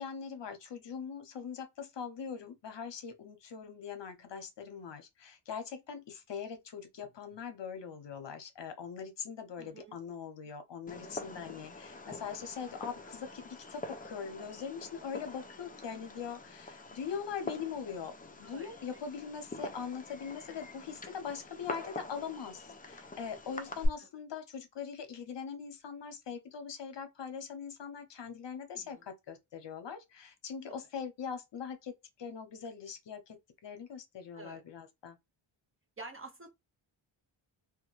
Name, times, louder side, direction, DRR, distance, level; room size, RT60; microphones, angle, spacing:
voice 1, 0.0-33.4 33.6-35.2, left 6 dB, 60° left, 0.7 m, -42 dB
voice 2, 9.6-10.0 18.4-19.0 23.5-23.6 28.7-29.0 30.7-30.8 34.3-34.6 36.0-36.5, right 3 dB, 25° right, 0.6 m, -49 dB
Fireworks, 10.9-23.9, left 2 dB, 20° left, 0.3 m, -44 dB
2.3 x 2.1 x 3.0 m
wide cardioid pair, 115°, 49 cm